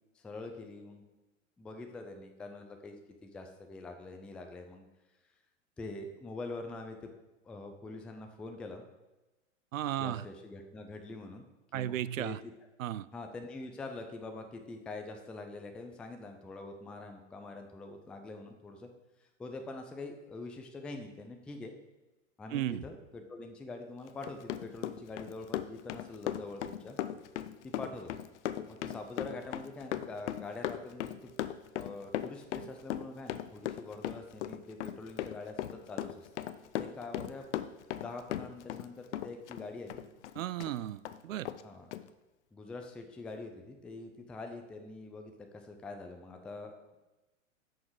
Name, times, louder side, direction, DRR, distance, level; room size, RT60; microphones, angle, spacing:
voice 1, 0.1-1.0 1.6-4.8 5.8-7.1 7.4-8.9 10.0-11.5 11.7-12.5 13.1-18.9 19.2-21.8 22.4-27.0 27.6-28.1 28.7-31.3 31.7-36.3 36.8-37.4 37.9-40.0 41.6-41.9 42.5-47.0, left 3 dB, 5° left, 5 dB, 0.3 m, -44 dB
voice 2, 9.7-10.2 11.7-12.4 12.8-13.1 22.5-22.8 40.4-41.5, right 12 dB, 80° right, 17 dB, 0.5 m, -35 dB
Run, 24.1-38.9 39.1-40.7 41.0-41.2 41.4-41.6 41.9-42.0, left 12 dB, 60° left, 0.6 m, -37 dB
9.2 x 6.5 x 3.8 m, 1.0 s
hypercardioid pair, 115°, 39 cm